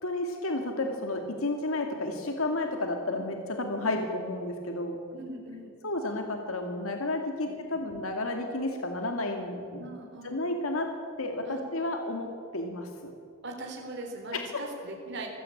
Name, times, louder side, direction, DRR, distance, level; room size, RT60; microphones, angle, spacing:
voice 1, 0.0-5.0 5.8-9.9 10.2-10.9 11.2-12.3 12.5-13.1 14.3-14.6, left 2 dB, 80° left, 4 dB, 2.3 m, -31 dB
voice 2, 5.1-5.7 7.4-7.8 9.8-10.4 11.4-11.7 13.4-15.3, right 2 dB, 55° right, 1 dB, 4.0 m, -41 dB
24.5 x 16.0 x 8.6 m, 2.5 s
head